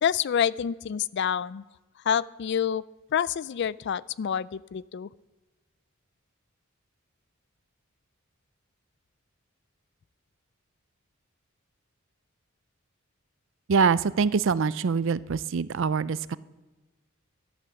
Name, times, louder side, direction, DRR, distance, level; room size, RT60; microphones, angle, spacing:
voice 1, 0.0-1.6 2.1-2.8 3.1-5.1, left 8 dB, 55° left, 20 dB, 0.3 m, -27 dB
voice 2, 13.7-16.4, right 5 dB, 60° right, 17 dB, 0.4 m, -24 dB
12.0 x 11.5 x 7.1 m, 1.2 s
head